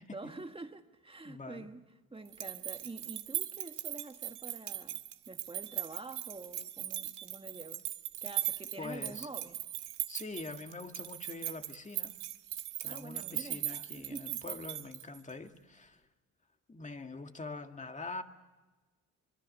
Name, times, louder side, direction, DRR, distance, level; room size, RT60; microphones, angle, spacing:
voice 1, 0.1-1.8 2.1-7.8 8.2-9.6 12.9-13.7 14.0-14.6, right 3 dB, 20° right, 1.7 m, -47 dB
voice 2, 1.2-1.7 8.8-9.3 10.1-12.1 12.8-16.0 16.7-18.2, left 3 dB, 25° left, 2.0 m, -44 dB
sound 1, 2.3-15.3, right 13 dB, 90° right, 1.5 m, -39 dB
25.0 x 23.5 x 6.7 m
cardioid pair, 90°, 30 cm